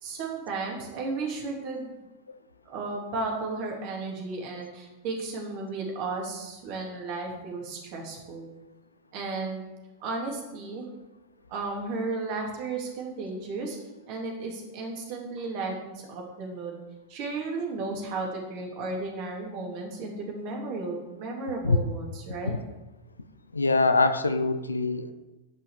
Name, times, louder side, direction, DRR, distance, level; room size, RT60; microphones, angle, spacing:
voice 1, 0.0-1.9 2.6-8.5 9.1-9.7 10.0-10.9 11.5-13.8 14.0-16.8 17.1-22.5, right 3 dB, 45° right, 0 dB, 3.1 m, -34 dB
voice 2, 23.5-25.1, left 3 dB, 80° left, 11 dB, 0.7 m, -24 dB
11.5 x 5.8 x 7.2 m, 1.1 s
figure-of-eight pair, 90°, 0 cm